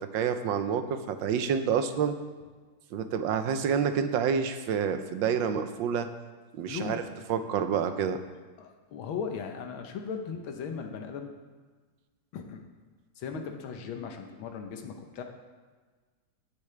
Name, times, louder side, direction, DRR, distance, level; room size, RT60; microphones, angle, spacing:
voice 1, 0.0-2.2 2.9-6.1 6.5-7.0 7.3-8.2, right 7 dB, 75° right, 9 dB, 1.4 m, -28 dB
voice 2, 6.7-7.1 7.7-7.8 8.6-11.3 12.3-12.6 13.2-15.2, left 6 dB, 90° left, 4 dB, 1.8 m, -37 dB
16.5 x 8.4 x 3.3 m, 1.4 s
omnidirectional pair, 2.2 m